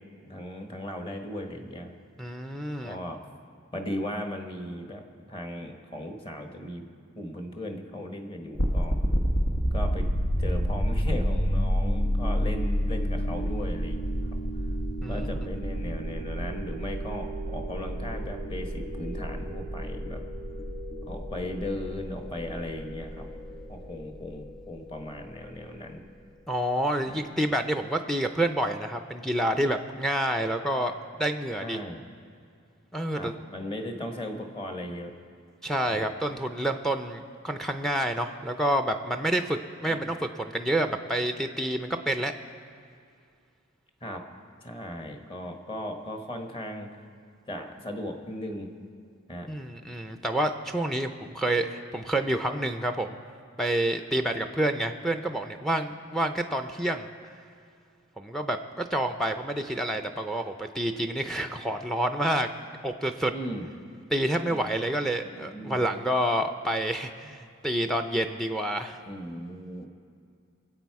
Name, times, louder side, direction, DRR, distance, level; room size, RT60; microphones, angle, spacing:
voice 1, 0.2-1.9 2.8-3.2 3.7-6.8 7.2-9.0 9.7-10.1 10.4-14.0 15.1-20.2 21.1-23.3 23.7-26.0 27.1-27.2 31.6-32.0 33.2-35.1 35.9-36.1 39.9-40.0 44.0-44.2 44.6-46.9 47.5-48.7 49.3-49.5 63.3-63.7 64.5-64.6 65.2-65.8 69.1-69.9, left 1 dB, 25° left, 4 dB, 1.2 m, -37 dB
voice 2, 2.2-3.0 15.0-15.5 26.5-31.8 32.9-33.3 35.6-42.3 49.5-53.2 53.6-57.1 58.2-62.5 62.8-63.3 64.1-69.0, right 1 dB, ahead, 6 dB, 0.4 m, -28 dB
sound 1, 8.5-25.5, equal, 85° left, 1.4 m, -29 dB
24.5 x 8.2 x 4.7 m, 2.3 s
head